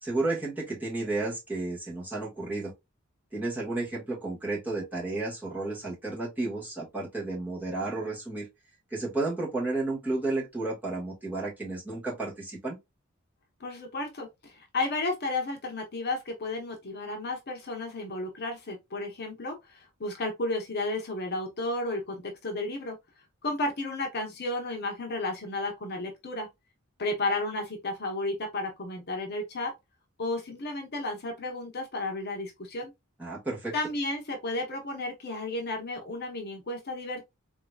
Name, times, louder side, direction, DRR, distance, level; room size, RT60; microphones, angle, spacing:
voice 1, 0.0-2.7 3.3-8.5 8.9-12.8 33.2-33.7, right 2 dB, 10° right, 1.6 m, -32 dB
voice 2, 13.6-23.0 23.4-26.5 27.0-29.7 30.2-32.9 33.7-37.2, left 2 dB, 50° left, 0.9 m, -33 dB
3.9 x 2.9 x 2.3 m
head